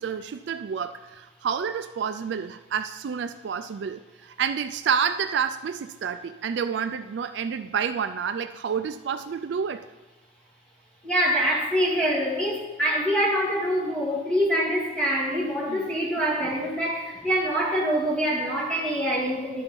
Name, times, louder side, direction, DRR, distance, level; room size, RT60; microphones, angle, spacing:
voice 1, 0.0-9.9 15.7-15.9, right 7 dB, 60° right, 10 dB, 0.3 m, -29 dB
voice 2, 11.0-19.6, equal, 5° left, -6 dB, 2.3 m, -25 dB
11.5 x 4.5 x 5.2 m, 1.2 s
head